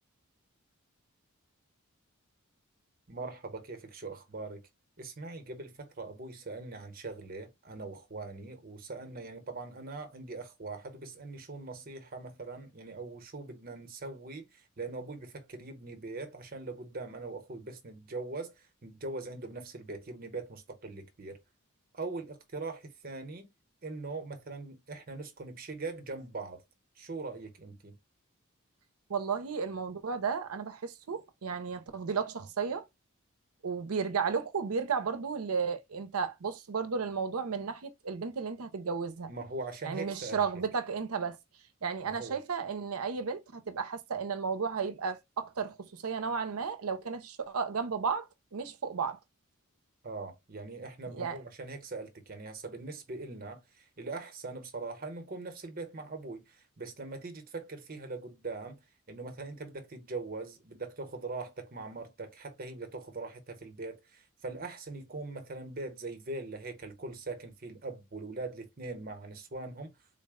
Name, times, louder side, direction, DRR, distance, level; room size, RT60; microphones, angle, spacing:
voice 1, 3.1-4.6 5.0-21.4 21.9-23.5 23.8-26.6 27.0-27.9 39.3-40.4 42.0-42.3 50.0-58.8 59.1-69.9, right 3 dB, 45° right, 0.9 m, -41 dB
voice 2, 29.1-32.8 33.6-39.3 39.8-41.4 41.8-49.2 51.1-51.4, right 5 dB, 85° right, 0.6 m, -33 dB
3.8 x 2.1 x 3.5 m
head